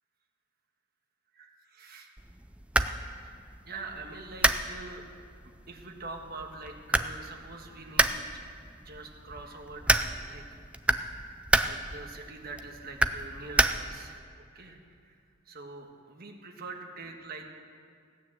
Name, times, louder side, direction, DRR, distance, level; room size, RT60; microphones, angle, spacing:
voice 1, 1.3-2.1 3.2-5.0 5.7-10.4 11.2-15.2 15.4-17.5, right 3 dB, 50° right, 2 dB, 1.6 m, -45 dB
sound 1, 2.2-14.2, right 2 dB, 5° right, 0.4 m, -31 dB
16.0 x 9.3 x 7.5 m, 2.4 s
head